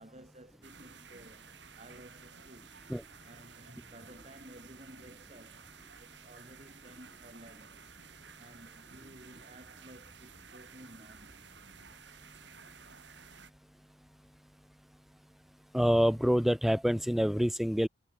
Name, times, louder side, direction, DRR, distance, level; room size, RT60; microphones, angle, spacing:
voice 1, 0.0-2.8 3.2-5.7 6.0-7.9 8.2-11.5, right 1 dB, 35° right, 7.3 m, -54 dB
sound 1, 0.6-13.5, right 6 dB, 60° right, 5.7 m, -54 dB
voice 2, 15.7-17.9, equal, ahead, 0.3 m, -26 dB
head